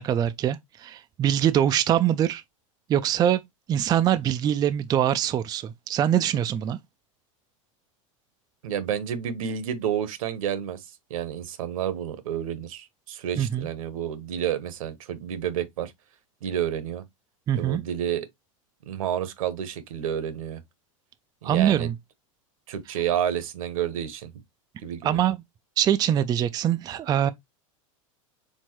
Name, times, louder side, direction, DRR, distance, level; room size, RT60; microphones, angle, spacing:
voice 1, 0.0-2.4 2.9-3.4 3.7-6.8 13.4-13.7 17.5-17.8 21.4-21.9 25.0-25.4 25.8-27.3, right 10 dB, 20° right, 0.3 m, -23 dB
voice 2, 8.6-10.8 11.1-15.9 16.4-17.0 17.5-18.3 18.9-20.6 21.4-21.9 22.7-24.3 24.8-25.2, right 9 dB, 80° right, 1.1 m, -30 dB
4.5 x 3.6 x 3.0 m
hypercardioid pair, 115°, 17 cm